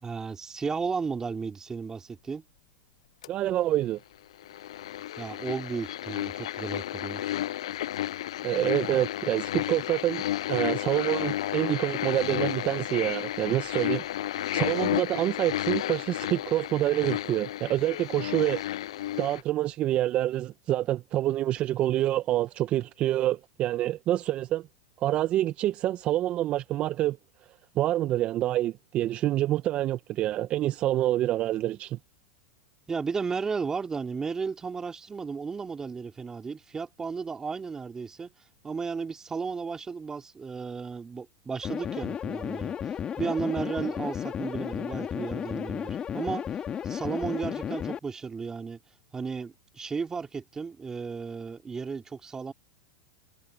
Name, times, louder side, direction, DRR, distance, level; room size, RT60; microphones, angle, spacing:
voice 1, 0.0-2.4 5.2-7.3 32.9-38.3 38.6-46.6 46.8-48.8 49.1-52.5, right 5 dB, 20° right, 3.3 m, -34 dB
sound 1, 3.2-3.3 4.4-19.4, left 13 dB, 75° left, 0.4 m, -32 dB
voice 2, 3.3-4.0 8.4-10.2 10.5-14.0 14.3-18.6 19.2-24.7 25.0-27.2 27.7-32.0, right 14 dB, 40° right, 1.1 m, -27 dB
sound 2, 41.6-48.0, left 8 dB, 30° left, 2.4 m, -33 dB
hypercardioid pair, 100°, 3 cm